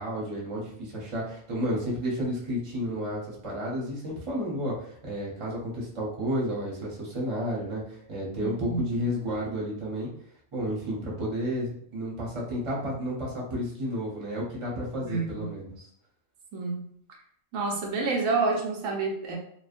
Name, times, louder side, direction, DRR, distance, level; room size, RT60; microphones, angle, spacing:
voice 1, 0.0-10.1 10.5-15.8, equal, 30° right, -5 dB, 0.8 m, -31 dB
voice 2, 8.4-8.9 15.0-15.5 16.5-16.8 17.5-19.4, right 3 dB, 85° right, 0 dB, 1.1 m, -29 dB
2.6 x 2.2 x 2.5 m, 0.64 s
omnidirectional pair, 1.4 m